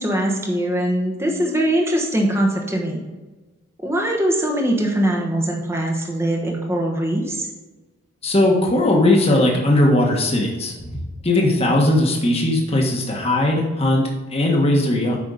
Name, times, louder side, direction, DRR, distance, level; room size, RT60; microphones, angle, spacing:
voice 1, 0.0-3.0 3.8-7.5, right 1 dB, 10° right, 0 dB, 1.2 m, -22 dB
voice 2, 8.2-11.0 11.2-15.2, left 1 dB, 25° left, 0 dB, 1.5 m, -18 dB
8.6 x 5.8 x 4.1 m, 1.2 s
head